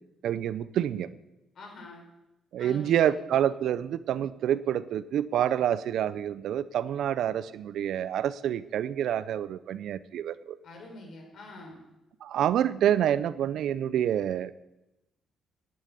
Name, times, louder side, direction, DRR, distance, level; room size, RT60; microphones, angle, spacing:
voice 1, 0.2-1.1 2.5-10.6 12.2-14.5, right 10 dB, 75° right, 16 dB, 0.6 m, -27 dB
voice 2, 1.5-2.0 2.6-3.1 10.6-11.8, left 2 dB, 65° left, 0 dB, 5.7 m, -45 dB
11.0 x 9.0 x 8.3 m, 0.94 s
cardioid pair, 90°, 0 cm